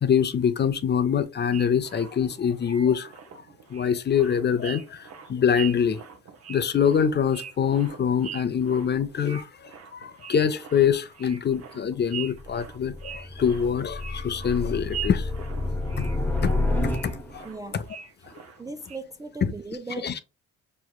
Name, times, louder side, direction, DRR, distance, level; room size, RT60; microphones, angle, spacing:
voice 1, 0.0-3.1 3.7-6.0 6.5-15.3 16.0-16.1 16.4-16.5 16.8-17.5 17.7-17.9 19.4-19.5 20.0-20.2, left 7 dB, 35° left, 0.5 m, -24 dB
sound 1, 1.5-19.0, right 9 dB, 55° right, 0.8 m, -43 dB
sound 2, 12.3-17.5, left 2 dB, 5° left, 1.0 m, -29 dB
voice 2, 17.4-17.8 18.6-20.2, right 3 dB, 10° right, 0.3 m, -38 dB
5.5 x 3.0 x 2.3 m
cardioid pair, 90°, 30 cm